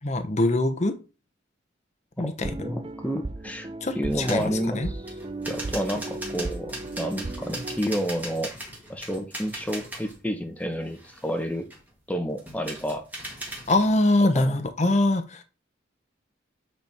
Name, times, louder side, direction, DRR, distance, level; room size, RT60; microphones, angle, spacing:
voice 1, 0.0-0.9 2.2-2.5 3.8-4.9 13.7-15.4, left 2 dB, 35° left, 0.8 m, -23 dB
voice 2, 2.2-3.7 3.9-5.0 5.5-8.6 8.9-11.7 12.1-13.1 14.3-14.6, equal, 10° left, 0.9 m, -30 dB
sound 1, 2.4-7.8, right 2 dB, 25° right, 0.4 m, -36 dB
sound 2, 4.1-4.5 5.1-10.2 10.6-11.9 12.4-13.9, right 1 dB, 10° right, 1.7 m, -39 dB
8.0 x 4.5 x 3.5 m
head